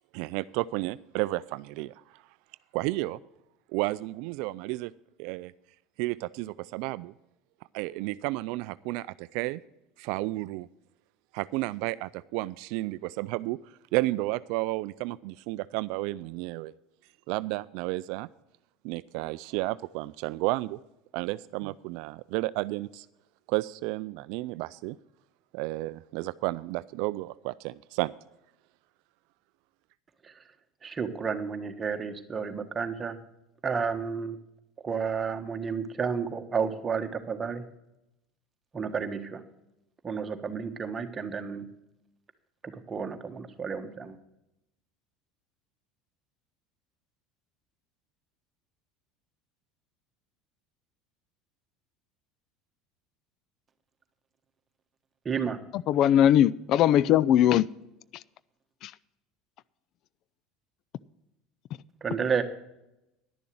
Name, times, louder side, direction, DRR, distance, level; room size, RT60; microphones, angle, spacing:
voice 1, 0.1-2.2 2.7-3.2 3.7-4.9 5.2-5.5 6.0-7.1 7.7-9.6 10.0-10.7 11.3-13.6 13.9-16.7 17.3-18.3 18.8-20.8 21.1-23.1 23.5-25.0 25.5-28.1, right 20 dB, 70° right, 0.3 m, -32 dB
voice 2, 30.8-33.2 33.6-34.4 34.8-37.6 38.7-39.4 40.0-41.6 42.6-44.2 55.2-55.6 62.0-62.4, right 6 dB, 25° right, 1.4 m, -31 dB
voice 3, 55.9-57.7 58.8-58.9, left 11 dB, 55° left, 0.4 m, -20 dB
11.0 x 6.9 x 7.7 m
supercardioid pair, 100°, 0 cm